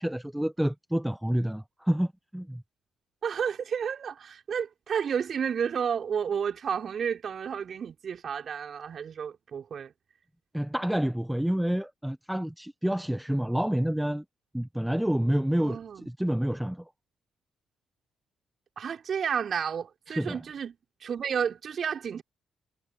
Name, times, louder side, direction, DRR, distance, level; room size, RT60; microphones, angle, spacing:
voice 1, 0.0-2.6 10.5-14.2 14.5-15.8 16.0-16.9 20.1-20.4, equal, 5° right, 1.2 m, -28 dB
voice 2, 3.2-9.9 15.6-16.1 18.8-22.2, right 7 dB, 55° right, 5.0 m, -31 dB
hypercardioid pair, 45°, 0 cm